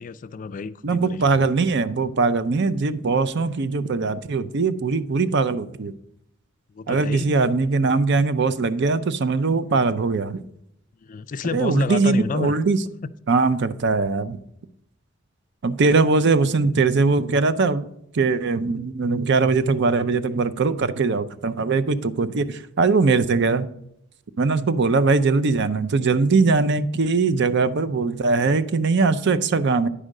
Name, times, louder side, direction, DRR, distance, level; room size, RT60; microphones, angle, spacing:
voice 1, 0.0-1.5 6.7-7.3 11.0-12.5 13.0-13.1, left 5 dB, 40° left, 0.3 m, -30 dB
voice 2, 0.8-5.9 6.9-10.4 11.5-12.8 13.3-14.4 15.6-17.9 18.1-23.7 24.4-29.9, right 4 dB, 60° right, 0.5 m, -21 dB
10.0 x 4.9 x 6.4 m
head